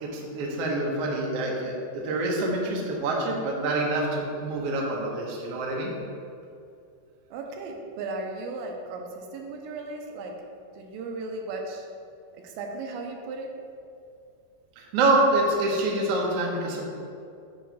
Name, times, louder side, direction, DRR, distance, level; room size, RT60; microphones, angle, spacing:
voice 1, 0.0-5.9 14.8-16.8, right 2 dB, 70° right, -2 dB, 1.5 m, -26 dB
voice 2, 7.3-10.5 10.8-11.9 12.3-13.5, right 3 dB, 85° right, 2 dB, 2.3 m, -36 dB
8.6 x 3.1 x 5.7 m, 2.5 s
omnidirectional pair, 4.0 m